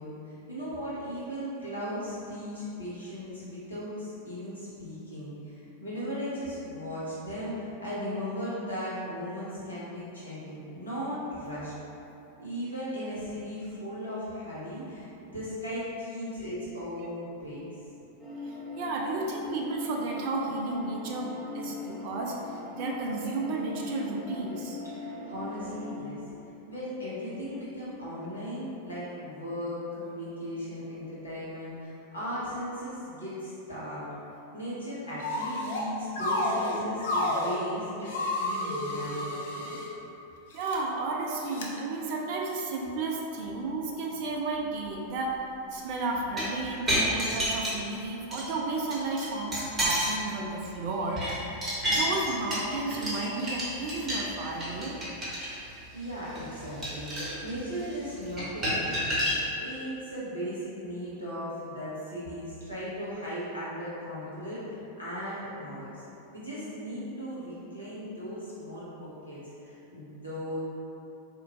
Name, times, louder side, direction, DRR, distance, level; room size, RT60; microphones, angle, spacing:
voice 1, 0.0-11.7 12.4-17.6 24.9-26.2 26.6-34.0 34.5-39.7 55.9-59.3 59.6-66.1 66.3-70.6, equal, 75° left, -10 dB, 1.2 m, -37 dB
sound 1, 18.2-25.9, left 2 dB, 20° left, 0.8 m, -40 dB
voice 2, 18.4-24.8 40.5-45.4 45.7-51.2 51.9-55.0, right 3 dB, 45° right, -1 dB, 0.4 m, -33 dB
sound 2, 35.2-35.9 36.2-37.6 38.1-39.9 40.5-40.8 41.5-41.7, left 1 dB, 60° left, 0.5 m, -30 dB
sound 3, 46.2-48.0 48.3-48.5 48.9-50.2 50.6-59.4, equal, 15° right, 1.1 m, -31 dB
4.3 x 2.8 x 2.5 m, 2.9 s
figure-of-eight pair, 90°, 0 cm